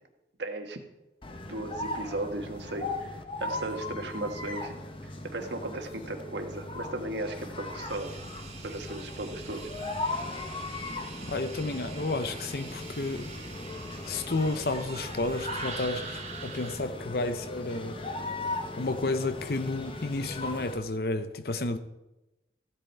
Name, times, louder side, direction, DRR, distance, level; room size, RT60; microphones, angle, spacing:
voice 1, 0.4-0.8 1.5-4.8 5.3-8.1 8.6-9.6, right 2 dB, 80° right, 4 dB, 1.5 m, -36 dB
sound 1, 1.2-20.9, left 2 dB, 30° left, 0.8 m, -38 dB
sound 2, 7.9-16.8, right 4 dB, 35° right, 1.7 m, -43 dB
voice 2, 11.3-13.3 14.1-18.0 18.8-21.8, left 2 dB, 60° left, 10 dB, 0.7 m, -31 dB
15.0 x 8.2 x 4.6 m, 0.99 s
head